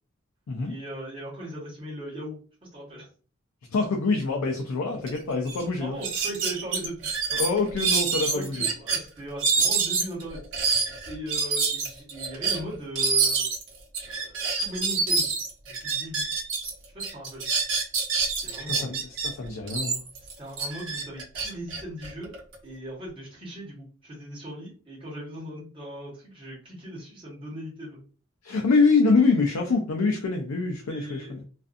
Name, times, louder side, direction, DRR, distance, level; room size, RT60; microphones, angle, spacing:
voice 1, 0.6-2.4 2.7-3.1 5.8-7.2 8.3-10.4 11.1-13.5 14.0-15.4 15.7-16.3 16.9-17.5 18.4-19.1 20.4-28.0 30.9-31.3, right 1 dB, 25° right, -7 dB, 1.1 m, -39 dB
voice 2, 3.7-6.0 7.3-8.7 18.7-20.0 28.4-31.4, left 4 dB, 90° left, 3 dB, 0.5 m, -25 dB
sound 1, 5.1-5.2 5.5-5.6 6.0-9.0 9.4-16.7 17.0-19.3 19.7-22.6, right 5 dB, 65° right, 0.8 m, -26 dB
2.5 x 2.4 x 2.5 m, 0.39 s
head